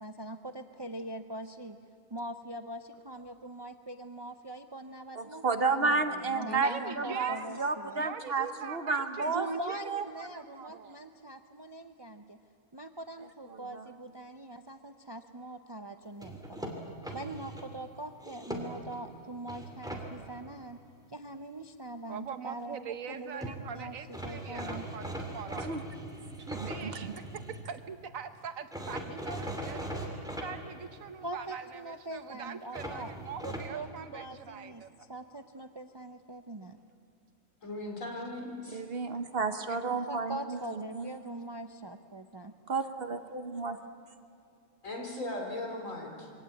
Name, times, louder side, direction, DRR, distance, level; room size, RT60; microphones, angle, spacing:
voice 1, 0.0-1.8 2.1-8.1 9.2-12.4 12.7-16.7 17.1-20.8 21.1-24.9 31.2-33.2 33.4-36.8 39.9-42.5, right 1 dB, 25° right, 7 dB, 0.5 m, -42 dB
voice 2, 5.2-9.5 9.9-10.0 13.5-13.8 25.6-25.8 26.6-27.1 38.7-41.1 42.7-43.8, right 4 dB, 50° right, 9 dB, 1.1 m, -32 dB
voice 3, 6.5-7.5 8.0-11.0 22.1-25.7 26.4-35.1, right 7 dB, 80° right, 10 dB, 1.4 m, -43 dB
sound 1, 16.2-17.7 18.2-19.0 19.5-20.0 23.1-23.2 23.4-23.6 24.1-27.6 28.7-30.5 32.7-33.7, right 1 dB, 5° right, 2.7 m, -39 dB
voice 4, 37.6-38.8 44.8-46.1, left 1 dB, 70° left, 1 dB, 3.9 m, -38 dB
24.0 x 18.0 x 8.4 m, 2.6 s
omnidirectional pair, 1.4 m